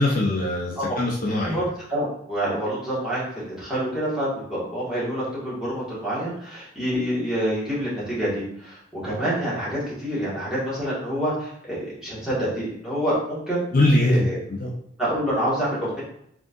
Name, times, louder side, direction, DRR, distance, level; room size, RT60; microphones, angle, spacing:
voice 1, 0.0-1.6 13.7-14.7, left 1 dB, 45° left, -3 dB, 0.8 m, -22 dB
voice 2, 1.3-1.6 1.9-13.6 14.1-14.4 15.0-16.0, equal, 5° right, -10 dB, 1.8 m, -27 dB
4.9 x 3.7 x 2.6 m, 0.70 s
head